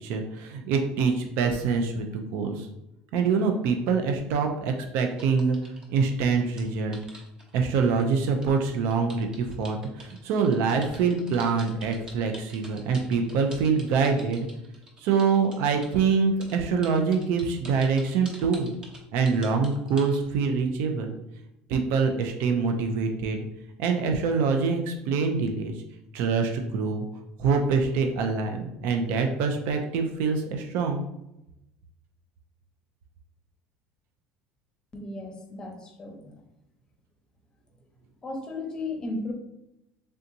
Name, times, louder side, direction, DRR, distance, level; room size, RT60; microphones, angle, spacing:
voice 1, 0.0-2.7 3.1-5.6 5.9-7.0 7.5-14.5 15.0-18.7 19.1-21.2 21.7-23.4 23.8-25.8 26.1-27.1 27.4-31.0, right 5 dB, 70° right, 4 dB, 0.4 m, -25 dB
sound 1, 5.1-16.0 16.4-20.2, right 1 dB, 20° right, 0.8 m, -47 dB
voice 2, 34.9-36.4 38.2-39.3, left 2 dB, 20° left, 2 dB, 0.7 m, -35 dB
3.4 x 2.7 x 2.6 m, 0.86 s
supercardioid pair, 120°, 4 cm